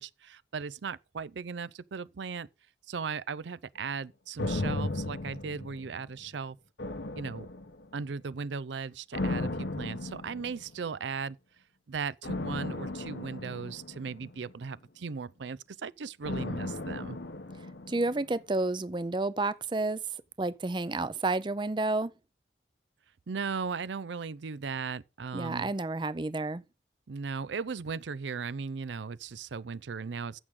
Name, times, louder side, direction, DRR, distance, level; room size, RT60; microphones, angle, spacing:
voice 1, 0.0-2.5 2.9-6.6 7.2-7.5 7.9-11.4 11.9-17.2 23.3-25.7 27.1-30.4, right 5 dB, 90° right, 0.5 m, -37 dB
sound 1, 4.4-6.3 6.8-8.1 9.1-10.8 12.2-14.6 16.2-18.4 18.7-18.8, left 2 dB, 75° left, 1.1 m, -36 dB
voice 2, 17.9-20.0 20.4-22.1 25.3-26.6, right 2 dB, 25° right, 0.5 m, -30 dB
15.0 x 6.1 x 3.7 m
head